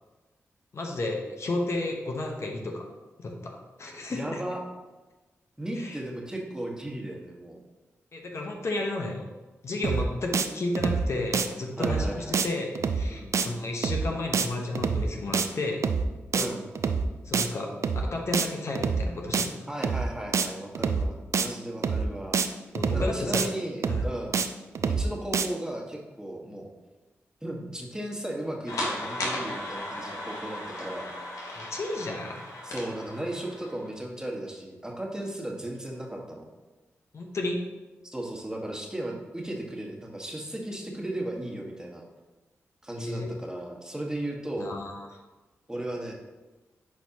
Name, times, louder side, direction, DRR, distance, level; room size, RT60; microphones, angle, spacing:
voice 1, 0.7-2.8 3.2-4.4 5.8-6.0 8.1-9.3 9.6-15.9 17.2-17.7 18.0-19.5 22.7-23.5 23.9-24.1 31.5-32.4 37.1-37.6 43.0-43.3 44.6-45.1, left 2 dB, 60° left, 1 dB, 1.0 m, -32 dB
voice 2, 4.1-4.6 5.6-7.6 9.8-10.1 11.8-12.4 13.1-13.3 16.3-16.7 19.7-22.4 22.9-24.4 24.9-26.7 27.4-31.1 32.6-36.4 38.1-42.0 42.8-44.7 45.7-46.1, right 1 dB, 10° right, 0 dB, 1.4 m, -35 dB
sound 1, 9.8-10.1 10.3-10.5 10.7-11.1 11.3-11.5 11.8-12.1 12.3-12.5 12.7-13.1 13.3-13.5 13.8-14.1 14.3-14.5 14.7-15.1 15.3-15.5 15.8-16.1 16.3-16.5 16.7-17.1 17.3-17.5 17.8-18.1 18.3-18.5 18.7-19.1 19.3-19.5 19.8-20.1 20.3-20.5 20.7-21.1 21.3-21.5 21.8-22.1 22.3-22.5 22.7-23.1 23.3-23.5 23.8-24.1 24.3-24.5 24.7-25.1 25.3-25.5, right 5 dB, 65° right, 0.4 m, -26 dB
sound 2, 28.7-33.9, left 1 dB, 85° left, 1.2 m, -36 dB
8.5 x 4.6 x 2.9 m, 1.2 s
cardioid pair, 50°, 5 cm